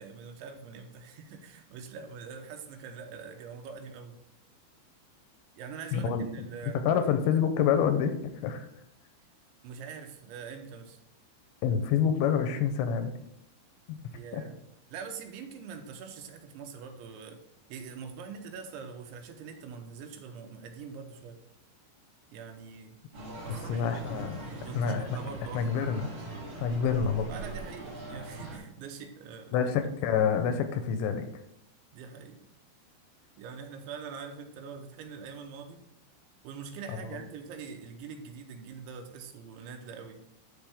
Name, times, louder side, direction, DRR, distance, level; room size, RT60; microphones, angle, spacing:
voice 1, 0.0-4.2 5.6-6.8 9.6-11.0 14.1-14.6 14.9-17.4 17.7-21.4 22.3-23.0 23.4-25.7 27.3-29.6 31.9-32.5 33.4-35.8 36.4-40.2, right 6 dB, 80° right, 5 dB, 3.2 m, -44 dB
voice 2, 5.9-6.2 6.9-8.2 8.4-8.7 11.6-13.1 13.9-14.0 14.3-14.4 23.7-24.4 24.8-25.0 25.5-26.1 26.6-27.3 29.5-31.2 36.9-37.2, left 7 dB, 85° left, 8 dB, 2.9 m, -27 dB
sound 1, 23.1-28.6, right 2 dB, 45° right, 4.4 m, -41 dB
12.5 x 4.4 x 3.5 m, 0.80 s
omnidirectional pair, 5.4 m